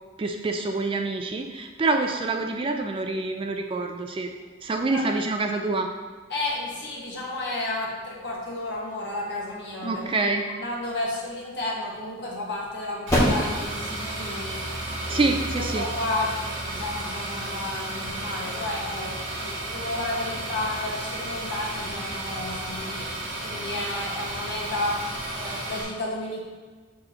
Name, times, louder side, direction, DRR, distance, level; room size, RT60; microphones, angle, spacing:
voice 1, 0.2-4.3 4.6-5.9 9.8-10.5 15.1-15.9, right 3 dB, 25° right, 4 dB, 0.3 m, -26 dB
voice 2, 6.3-14.7 15.1-26.4, left 2 dB, 55° left, -4 dB, 1.5 m, -32 dB
sound 1, 10.9-17.8, equal, 15° left, 1.6 m, -31 dB
sound 2, 13.1-25.8, right 1 dB, 65° right, 1.9 m, -33 dB
6.8 x 6.4 x 2.9 m, 1.4 s
head